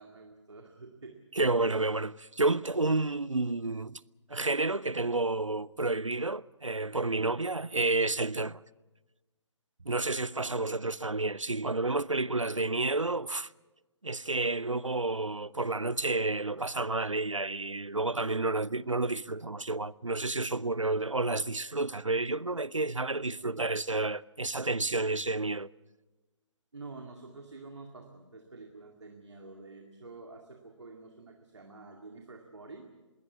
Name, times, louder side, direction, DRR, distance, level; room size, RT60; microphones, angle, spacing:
voice 1, 0.0-1.2 10.4-10.6 26.7-32.9, right 3 dB, 65° right, 2.2 m, -48 dB
voice 2, 1.3-4.0 4.3-8.6 9.9-13.5 14.0-25.7, right 2 dB, 90° right, 0.6 m, -30 dB
21.0 x 17.0 x 8.3 m
figure-of-eight pair, 140°, 16 cm